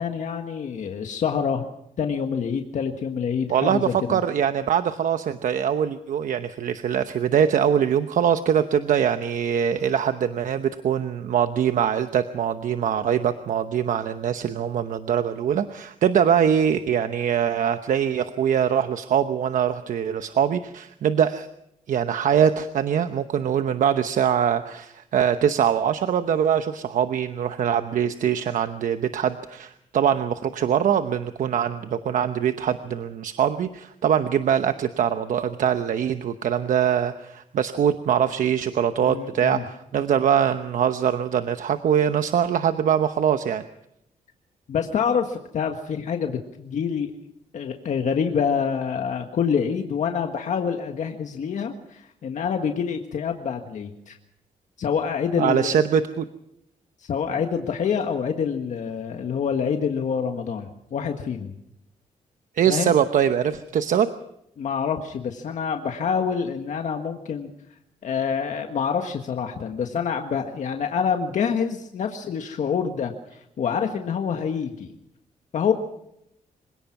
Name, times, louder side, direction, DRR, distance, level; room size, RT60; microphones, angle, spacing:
voice 1, 0.0-1.7 2.0-4.2 39.0-39.6 44.7-47.1 47.5-54.2 54.8-55.8 57.1-61.5 62.7-62.9 64.6-67.5 68.0-74.9 75.5-75.7, left 7 dB, 60° left, 4 dB, 1.6 m, -26 dB
voice 2, 3.5-21.5 21.9-43.6 55.4-56.2 62.5-64.1, right 8 dB, 70° right, 9 dB, 1.0 m, -23 dB
26.0 x 17.5 x 6.0 m, 0.78 s
cardioid pair, 125°, 14 cm